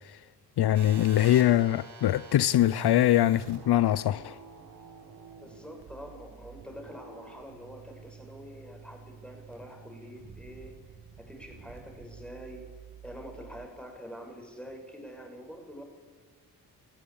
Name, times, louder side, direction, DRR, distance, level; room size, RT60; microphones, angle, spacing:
voice 1, 0.6-4.4, left 13 dB, 80° left, 0.6 m, -23 dB
sound 1, 0.7-13.7, right 6 dB, 90° right, 4.1 m, -47 dB
voice 2, 5.4-10.8 11.2-12.6 13.0-15.8, equal, 5° left, 6.3 m, -45 dB
26.0 x 16.5 x 8.8 m
cardioid pair, 90°, 39 cm